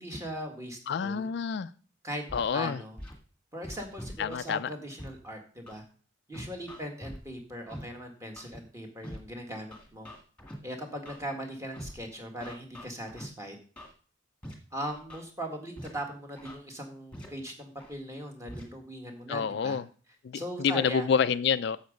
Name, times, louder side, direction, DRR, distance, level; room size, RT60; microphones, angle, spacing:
voice 1, 0.0-1.3 2.0-2.2 2.5-3.0 3.5-5.8 6.3-10.1 10.6-13.6 14.7-19.8 20.3-21.1, equal, 15° right, 1.8 m, -39 dB
voice 2, 0.9-1.7 2.3-2.8 4.2-4.7 19.3-19.9 20.2-21.8, left 6 dB, 55° left, 0.3 m, -28 dB
Scratching (performance technique), 2.3-2.5 3.0-3.1 3.6-4.5 5.0-5.1 5.7-5.8 6.3-7.2 7.7-7.8 8.4-8.6 9.0-9.2 9.7-10.5 11.1-11.2 11.7-11.9 12.4-13.2 13.8-13.9 14.4-14.5 14.8-15.2 15.8-15.9 16.4-16.5 17.1-17.3 17.8-17.9 18.5-18.6, equal, 5° left, 1.9 m, -43 dB
9.4 x 7.2 x 5.2 m
head